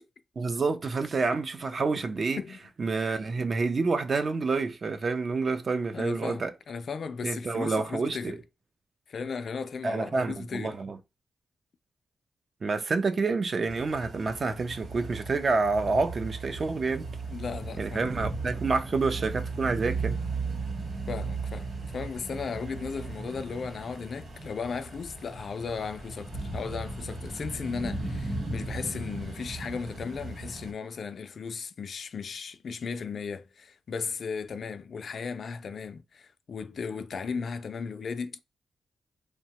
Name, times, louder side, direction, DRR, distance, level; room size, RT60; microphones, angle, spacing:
voice 1, 0.4-2.4 2.8-6.5 7.2-8.4 9.8-11.0 12.6-17.1 17.8-20.2, right 4 dB, 45° right, 0.5 m, -28 dB
voice 2, 5.9-8.4 9.1-10.8 17.3-18.0 21.1-38.4, left 5 dB, 60° left, 0.3 m, -36 dB
sound 1, 13.7-30.7, right 3 dB, 75° right, 1.1 m, -36 dB
2.7 x 2.2 x 2.8 m
cardioid pair, 80°, 0 cm